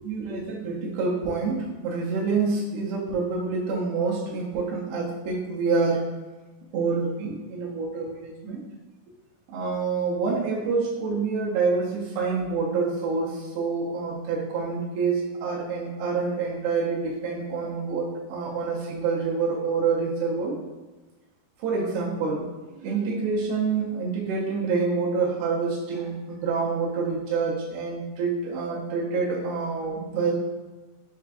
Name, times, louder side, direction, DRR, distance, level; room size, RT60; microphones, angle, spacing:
voice 1, 0.0-6.0 6.7-8.7 9.5-20.6 21.6-30.3, right 4 dB, 85° right, -5 dB, 2.5 m, -27 dB
6.5 x 2.4 x 2.5 m, 1.2 s
omnidirectional pair, 4.5 m